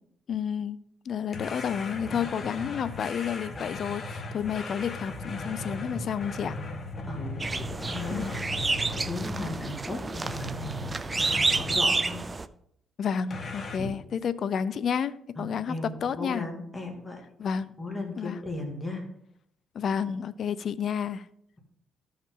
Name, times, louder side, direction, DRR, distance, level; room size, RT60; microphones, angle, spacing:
voice 1, 0.3-6.6 8.1-8.4 13.0-15.8 16.0-16.4 17.4-17.7 18.2-18.4 19.7-21.3, left 7 dB, 60° left, 0.5 m, -30 dB
sound 1, 1.3-9.8 10.2-11.9 13.3-13.8, left 2 dB, 40° left, 1.4 m, -37 dB
voice 2, 7.1-8.4 8.8-12.2 13.8-13.9 15.4-17.2 17.8-19.1, left 2 dB, 15° left, 2.2 m, -36 dB
sound 2, 7.4-12.4, right 3 dB, 25° right, 0.4 m, -29 dB
13.5 x 5.5 x 3.8 m
cardioid pair, 90°, 0 cm